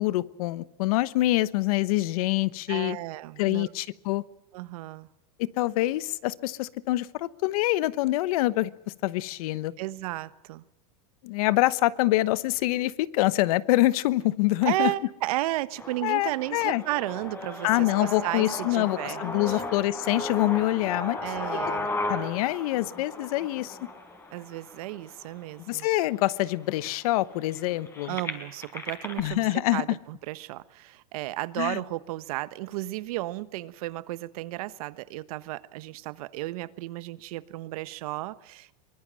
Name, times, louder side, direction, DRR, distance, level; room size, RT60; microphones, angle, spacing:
voice 1, 0.0-3.0 3.4-4.2 5.4-8.7 9.0-9.7 11.2-14.9 16.0-16.8 17.6-21.2 22.1-23.8 25.7-28.2 29.2-30.0 31.6-31.8, left 17 dB, 65° left, 17 dB, 1.1 m, -25 dB
voice 2, 2.7-3.7 4.5-5.1 9.8-10.6 14.6-19.6 21.2-21.9 24.3-25.9 28.1-38.7, right 17 dB, 70° right, 15 dB, 1.3 m, -33 dB
sound 1, 15.8-25.7 26.4-26.5 26.7-29.2, left 2 dB, 15° left, 4.5 m, -35 dB
23.5 x 20.5 x 7.6 m, 0.91 s
supercardioid pair, 145°, 20 cm